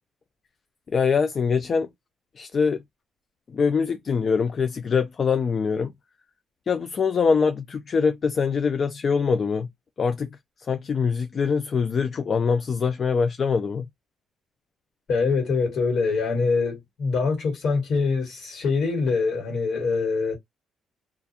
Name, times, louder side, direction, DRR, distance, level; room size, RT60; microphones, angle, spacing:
voice 1, 0.9-1.9 2.4-2.8 3.5-5.9 6.7-9.7 10.0-10.3 10.7-13.9, left 5 dB, 45° left, 0.3 m, -23 dB
voice 2, 15.1-20.3, left 4 dB, 65° left, 1.5 m, -24 dB
2.4 x 2.2 x 2.7 m
cardioid pair, 90°, 0 cm